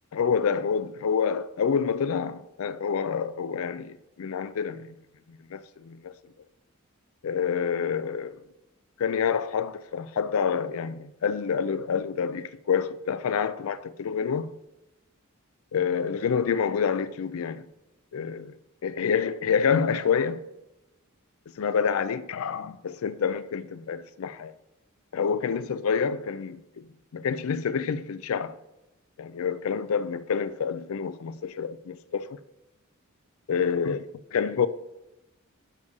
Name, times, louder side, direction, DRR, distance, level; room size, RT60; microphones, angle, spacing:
voice 1, 0.1-4.9 5.3-6.2 7.2-8.4 9.0-14.5 15.7-17.7 18.1-18.6 18.8-20.4 21.6-24.5 25.1-26.9 27.1-28.6 29.2-32.4 33.5-34.1 34.3-34.7, left 6 dB, 80° left, 0.4 m, -27 dB
6.8 x 4.8 x 7.0 m
head